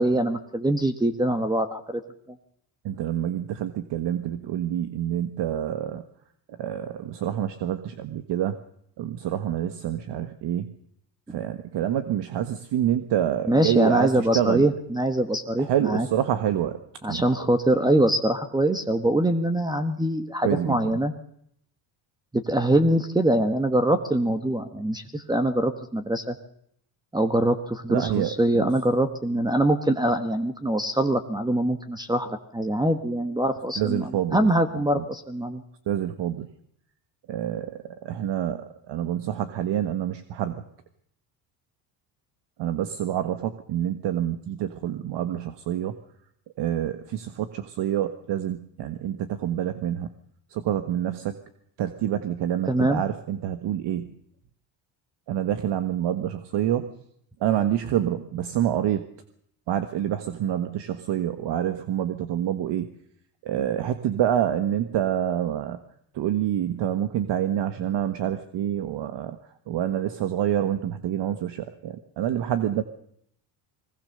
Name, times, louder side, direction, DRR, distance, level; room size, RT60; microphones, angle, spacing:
voice 1, 0.0-2.0 13.5-16.1 17.0-21.1 22.3-26.4 27.1-34.0 34.3-35.6 52.7-53.0, right 1 dB, 10° right, 8 dB, 1.4 m, -23 dB
voice 2, 2.8-6.0 6.5-8.6 9.0-10.8 11.3-14.7 15.6-16.8 17.1-17.3 20.4-21.0 27.9-28.7 33.8-34.5 34.7-35.0 35.9-36.5 37.3-40.6 42.6-46.0 46.6-50.1 50.5-51.4 51.8-54.1 55.3-56.9 57.4-59.0 59.7-62.9 63.4-65.8 66.1-69.4 69.7-72.8, right 11 dB, 60° right, 10 dB, 1.4 m, -27 dB
22.0 x 19.5 x 6.7 m, 0.69 s
cardioid pair, 105°, 48 cm